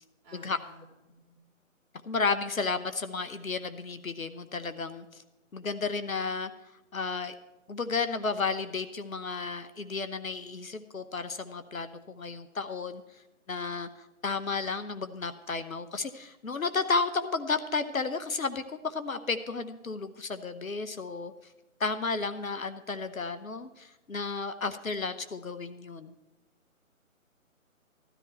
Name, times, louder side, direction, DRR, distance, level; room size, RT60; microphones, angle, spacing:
voice 1, 0.2-1.4, equal, 15° right, -2 dB, 3.0 m, -55 dB
voice 2, 2.0-5.2 5.5-6.5 6.9-7.3 7.7-13.0 13.5-13.9 14.2-21.3 21.8-26.1, left 4 dB, 70° left, 11 dB, 0.9 m, -32 dB
14.0 x 13.0 x 4.3 m, 1.0 s
figure-of-eight pair, 145°, 42 cm